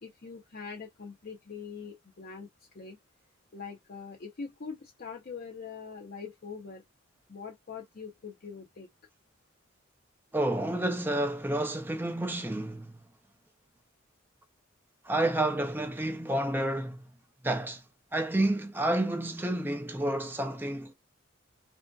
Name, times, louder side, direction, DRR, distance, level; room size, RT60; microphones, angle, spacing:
voice 1, 0.0-2.5 2.7-3.0 3.5-6.8 7.3-8.9, left 5 dB, 45° left, 0.6 m, -43 dB
voice 2, 10.3-13.0 15.0-17.0 17.4-17.8 18.1-20.9, right 1 dB, 10° right, 0.4 m, -30 dB
3.5 x 2.6 x 2.2 m
head